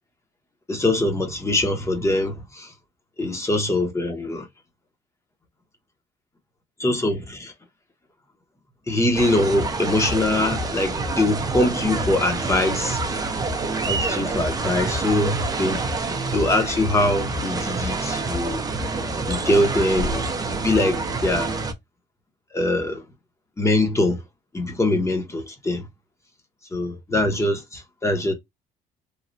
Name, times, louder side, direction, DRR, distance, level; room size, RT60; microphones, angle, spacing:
voice 1, 0.7-2.7 3.2-4.5 6.8-7.5 8.9-13.5 13.9-15.8 16.1-18.7 19.3-21.5 22.5-23.0 23.6-24.2 24.5-25.8 26.7-28.3, left 1 dB, 15° left, 0.9 m, -23 dB
sound 1, 9.1-21.7, right 3 dB, 20° right, 0.6 m, -27 dB
3.2 x 2.3 x 2.5 m
cardioid pair, 110°, 17 cm